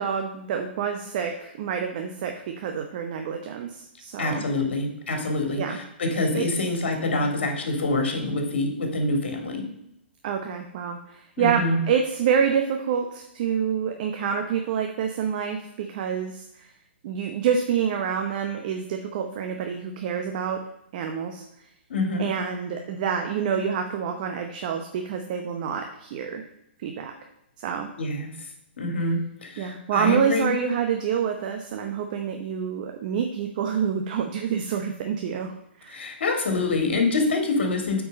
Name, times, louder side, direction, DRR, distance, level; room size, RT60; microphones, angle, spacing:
voice 1, 0.0-4.4 5.6-5.8 6.3-6.5 7.2-7.4 10.2-16.7 17.0-20.6 20.9-21.4 22.2-26.4 26.8-27.2 27.6-27.9 29.6-35.5 35.8-36.0, right 7 dB, 45° right, 4 dB, 0.8 m, -27 dB
voice 2, 4.2-9.7 11.4-11.8 21.9-22.3 28.0-28.3 28.8-30.5 35.9-38.0, left 2 dB, 70° left, 4 dB, 2.0 m, -26 dB
8.2 x 4.7 x 5.1 m, 0.79 s
hypercardioid pair, 130°, 6 cm